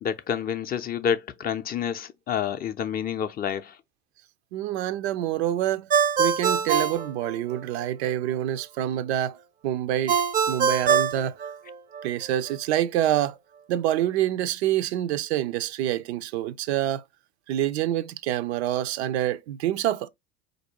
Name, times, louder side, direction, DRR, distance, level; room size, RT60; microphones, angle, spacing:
voice 1, 0.0-3.8, left 8 dB, 30° left, 0.4 m, -28 dB
voice 2, 4.5-5.9 6.2-9.4 9.6-10.2 10.5-11.4 12.0-13.4 13.7-17.0 17.5-20.1, right 12 dB, 75° right, 0.5 m, -26 dB
Ringtone, 5.9-7.8 10.1-12.0, right 7 dB, 25° right, 0.5 m, -23 dB
4.1 x 2.6 x 2.8 m
hypercardioid pair, 85°, 33 cm